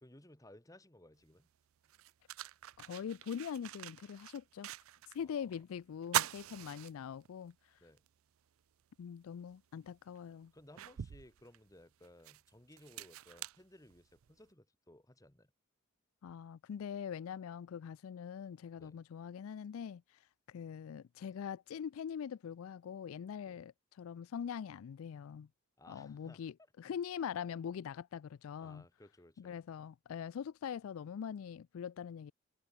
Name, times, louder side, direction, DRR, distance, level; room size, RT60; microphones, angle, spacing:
voice 1, 0.0-1.5 5.2-5.5 7.8-8.0 10.5-15.5 18.8-19.0 23.5-23.6 25.8-26.4 26.8-26.9 28.6-29.6, left 1 dB, 15° left, 1.9 m, -59 dB
sound 1, 1.2-1.3 1.8-5.2 5.5-5.6 6.0-7.5 8.0-8.1 9.5-9.6 10.2-14.4, right 12 dB, 85° right, 0.4 m, -42 dB
voice 2, 2.8-4.7 5.1-7.5 9.0-10.5 16.2-20.2 20.5-25.5 25.9-28.8 29.4-32.3, left 7 dB, 90° left, 0.4 m, -43 dB
head